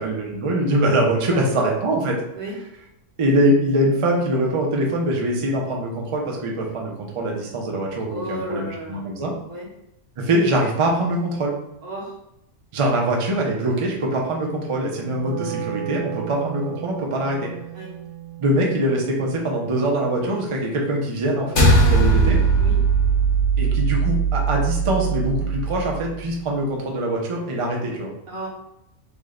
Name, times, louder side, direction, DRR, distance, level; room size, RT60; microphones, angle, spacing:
voice 1, 0.0-2.2 3.2-9.3 10.2-11.6 12.7-17.5 18.4-22.4 23.6-28.1, right 1 dB, 45° right, -1 dB, 0.4 m, -23 dB
voice 2, 1.3-1.6 2.3-2.6 8.1-9.1 9.5-9.7 11.8-12.2 17.7-17.9 22.6-22.8 28.3-28.5, right 1 dB, 85° right, -3 dB, 1.4 m, -33 dB
Wind instrument woodwind instrument, 15.0-21.2, right 11 dB, 65° right, 0.9 m, -36 dB
sound 1, 21.6-26.1, right 3 dB, 75° left, 1.2 m, -19 dB
3.5 x 2.1 x 3.6 m, 0.86 s
omnidirectional pair, 1.5 m